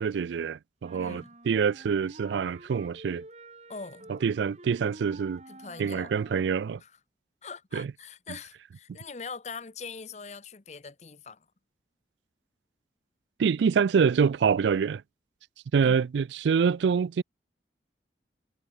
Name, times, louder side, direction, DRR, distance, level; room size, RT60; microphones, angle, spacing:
voice 1, 0.0-3.2 4.1-5.4 5.8-6.8 7.7-7.9 13.4-15.0 15.7-17.2, right 6 dB, 85° right, 0.4 m, -26 dB
sound 1, 0.8-6.6, right 2 dB, 40° right, 2.7 m, -49 dB
voice 2, 0.9-1.3 3.7-4.1 5.5-6.1 6.8-6.9 7.4-11.5 15.8-16.0, left 4 dB, 40° left, 0.8 m, -42 dB
head